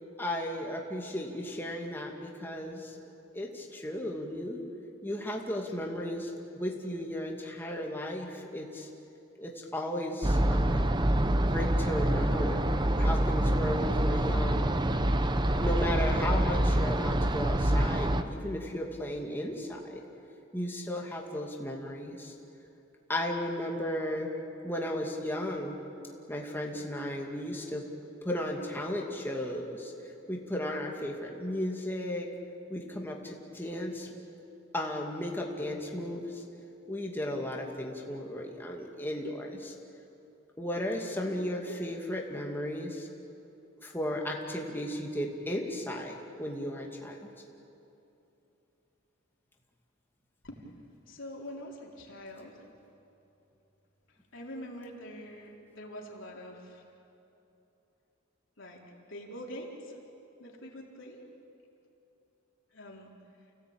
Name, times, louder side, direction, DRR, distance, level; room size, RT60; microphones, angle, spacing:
voice 1, 0.2-4.6 5.0-6.3 6.6-8.9 9.4-10.9 11.5-12.7 13.0-14.7 15.6-20.0 20.5-22.3 23.1-24.3 24.6-25.8 26.3-27.8 28.2-29.9 30.3-32.3 32.7-34.1 34.7-36.4 36.9-39.7 40.6-43.1 43.8-47.2, left 1 dB, 10° left, -1 dB, 2.5 m, -35 dB
sound 1, 10.2-18.2, right 1 dB, 20° right, 0.8 m, -26 dB
voice 2, 51.1-52.7 54.1-56.8 58.6-58.8 59.1-60.0 60.4-61.2 62.7-63.1, equal, 60° left, -2 dB, 4.0 m, -44 dB
29.5 x 17.5 x 8.9 m, 2.9 s
head